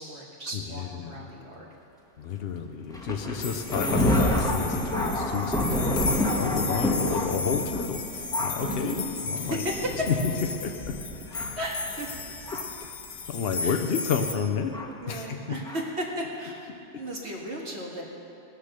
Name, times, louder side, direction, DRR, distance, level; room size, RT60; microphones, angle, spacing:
voice 1, 0.0-1.7 6.0-6.4 8.6-9.0 9.4-10.1 11.5-12.1 13.6-13.8 15.0-18.0, equal, 55° right, -2 dB, 2.1 m, -35 dB
voice 2, 0.5-1.2 2.2-9.6 10.1-10.2 10.6-11.0 11.3-11.6 12.5-12.6 13.3-14.8 15.1-15.6, left 6 dB, 55° left, 5 dB, 0.8 m, -31 dB
Thunder, 2.9-12.8 13.6-13.7 14.7-14.9 15.6-15.8, left 1 dB, 5° left, 1.1 m, -29 dB
sound 1, 3.4-14.3, left 4 dB, 90° left, 1.5 m, -35 dB
19.0 x 6.7 x 6.6 m, 2.8 s
omnidirectional pair, 1.4 m